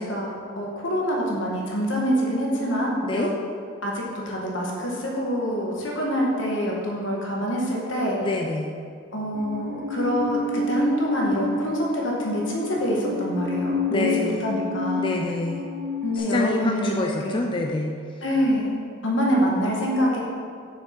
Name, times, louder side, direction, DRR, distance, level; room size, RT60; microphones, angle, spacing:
voice 1, 0.0-3.3 3.8-8.2 9.1-14.1 14.4-15.1 16.0-17.4 18.2-18.8 19.0-20.2, equal, 80° left, -2 dB, 1.5 m, -25 dB
voice 2, 8.2-8.7 13.9-14.5 15.0-15.7 16.2-17.9, left 2 dB, 25° left, 1 dB, 0.4 m, -27 dB
Musical instrument, 9.3-16.2, left 3 dB, 50° right, 1.2 m, -29 dB
6.9 x 5.8 x 4.4 m, 2.3 s
head